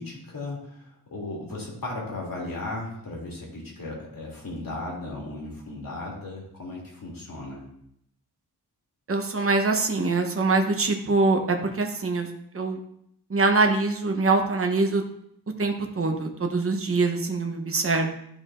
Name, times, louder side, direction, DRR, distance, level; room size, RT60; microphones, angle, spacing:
voice 1, 0.0-7.6, left 2 dB, 55° left, -3 dB, 2.7 m, -36 dB
voice 2, 9.1-12.3 12.5-12.8 13.3-15.0 15.6-18.1, right 3 dB, 35° right, 4 dB, 0.9 m, -24 dB
12.0 x 4.7 x 2.5 m, 0.73 s
wide cardioid pair, 125°, 40 cm